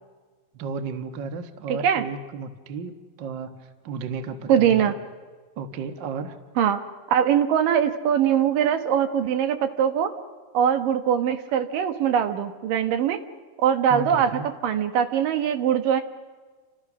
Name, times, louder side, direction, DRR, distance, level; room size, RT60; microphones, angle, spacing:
voice 1, 0.5-2.9 3.2-4.8 5.6-6.4 13.9-14.5, right 5 dB, 85° right, 8 dB, 1.0 m, -33 dB
voice 2, 1.7-2.0 4.5-4.9 6.6-6.8 7.1-10.1 10.5-13.2 13.6-16.0, right 8 dB, 65° right, 8 dB, 2.9 m, -22 dB
30.0 x 26.5 x 6.2 m, 1.4 s
omnidirectional pair, 4.5 m